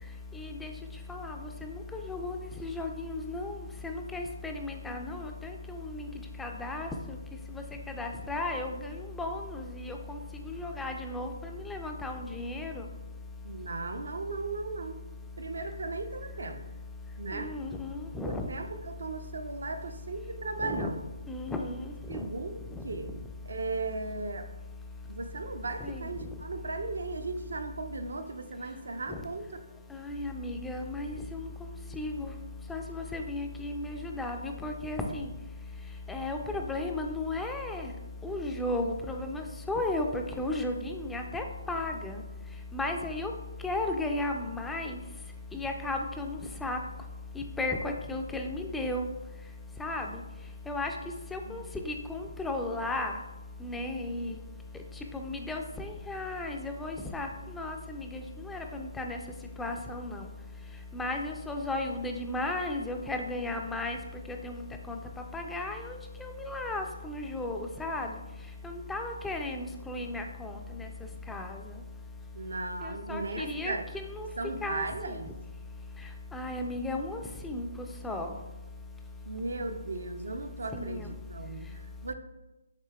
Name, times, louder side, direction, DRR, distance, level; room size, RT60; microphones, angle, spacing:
voice 1, 0.4-0.7 1.1-1.4 1.6-3.6 3.8-6.1 6.4-6.9 8.0-10.0 10.4-11.3 11.7-12.8 17.3-18.5 20.6-20.9 21.3-22.2 25.8-26.0 29.1-29.2 29.9-31.5 31.9-32.3 32.7-35.3 36.1-37.9 38.2-42.2 42.7-43.3 43.6-45.0 45.5-46.8 47.4-49.1 49.8-50.1 50.7-50.9 51.3-53.1 53.6-54.4 55.1-57.3 57.6-59.2 59.6-60.3 60.9-64.0 64.3-64.6 64.9-65.0 65.3-66.0 66.2-68.1 68.6-70.5 70.8-70.9 71.3-71.6 73.1-74.3 74.6-74.8 76.3-77.7 78.0-78.3 80.7-81.1, left 2 dB, 5° left, 3 dB, 0.3 m, -34 dB
voice 2, 13.4-15.0 15.4-16.6 17.2-17.5 18.2-21.1 22.1-23.1 23.4-24.5 25.1-29.5 51.4-51.8 72.3-73.8 74.4-75.3 79.3-82.1, right 3 dB, 70° right, 7 dB, 0.4 m, -37 dB
6.6 x 2.7 x 2.3 m, 1.0 s
figure-of-eight pair, 140°, 0 cm